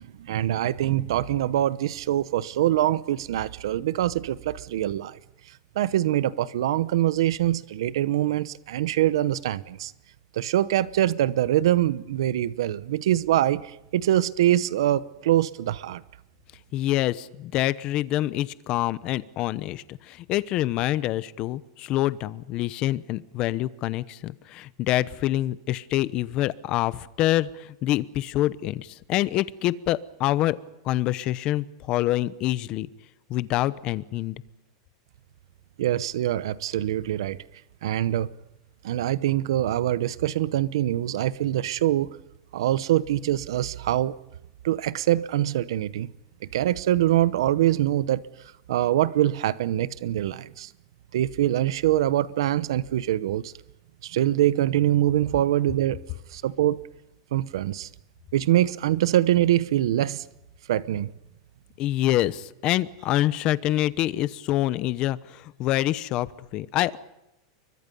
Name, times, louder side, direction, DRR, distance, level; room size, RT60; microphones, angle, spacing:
voice 1, 0.0-5.2 5.7-9.9 10.3-16.0 35.8-37.4 37.8-38.3 38.8-42.2 42.5-44.2 44.6-46.1 46.5-48.2 48.7-50.7 51.1-53.5 54.0-56.0 56.3-56.8 57.3-57.9 58.3-60.2 60.7-61.1, right 13 dB, 80° right, 0.9 m, -24 dB
voice 2, 16.7-30.6 30.8-32.9 33.3-34.4 61.8-67.0, left 15 dB, 35° left, 0.9 m, -26 dB
30.0 x 23.5 x 5.5 m
supercardioid pair, 165°, 3 cm